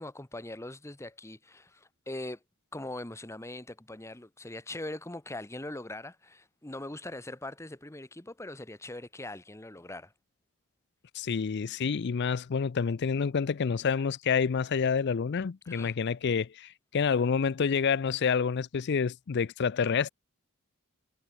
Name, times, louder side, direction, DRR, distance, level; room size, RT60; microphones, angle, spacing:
voice 1, 0.0-2.4 2.7-10.1 15.6-15.9, left 1 dB, 10° left, 1.0 m, -41 dB
voice 2, 11.1-20.1, left 6 dB, 50° left, 0.4 m, -28 dB
head